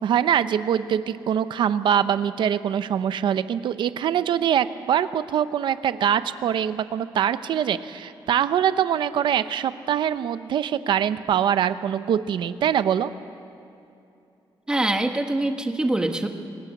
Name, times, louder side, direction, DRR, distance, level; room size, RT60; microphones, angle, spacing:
voice 1, 0.0-13.1, right 9 dB, 65° right, 13 dB, 0.7 m, -23 dB
voice 2, 14.7-16.3, right 1 dB, 10° right, 5 dB, 1.2 m, -24 dB
26.5 x 16.0 x 8.4 m, 2.7 s
wide cardioid pair, 180°, 9 cm